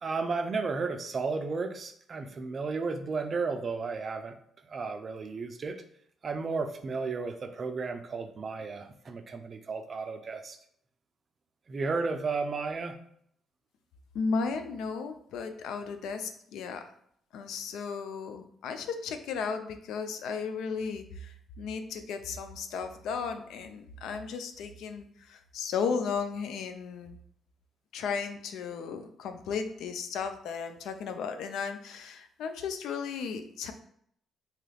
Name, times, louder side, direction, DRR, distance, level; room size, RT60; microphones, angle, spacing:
voice 1, 0.0-4.4 4.7-5.8 6.2-10.6 11.7-13.0, right 4 dB, 45° right, 7 dB, 0.4 m, -33 dB
voice 2, 14.1-16.9 17.3-27.2 27.9-33.7, left 5 dB, 85° left, 7 dB, 0.3 m, -35 dB
2.9 x 2.3 x 3.2 m, 0.67 s
cardioid pair, 90°, 0 cm